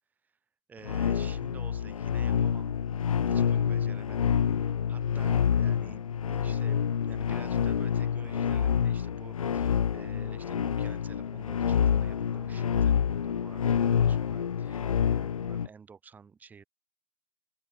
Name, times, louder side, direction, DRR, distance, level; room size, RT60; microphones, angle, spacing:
voice 1, 0.7-2.8 3.3-16.6, right 6 dB, 10° right, 3.7 m, -51 dB
sound 1, 0.8-15.7, left 8 dB, 85° left, 0.9 m, -27 dB
hypercardioid pair, 150°, 17 cm